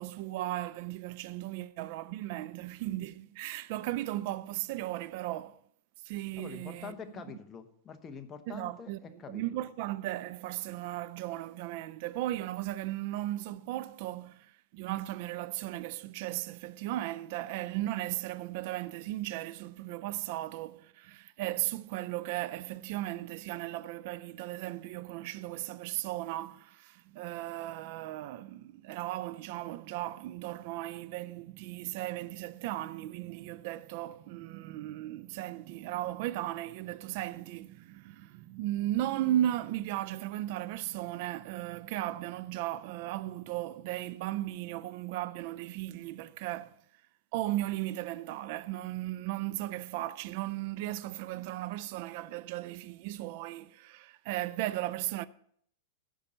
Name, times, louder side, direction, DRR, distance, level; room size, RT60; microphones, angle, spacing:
voice 1, 0.0-5.6 6.0-6.9 8.5-46.8 47.3-55.3, right 15 dB, 55° right, 0.5 m, -36 dB
voice 2, 6.4-9.6, left 6 dB, 20° left, 1.0 m, -46 dB
10.0 x 5.4 x 7.5 m
supercardioid pair, 135°, 0 cm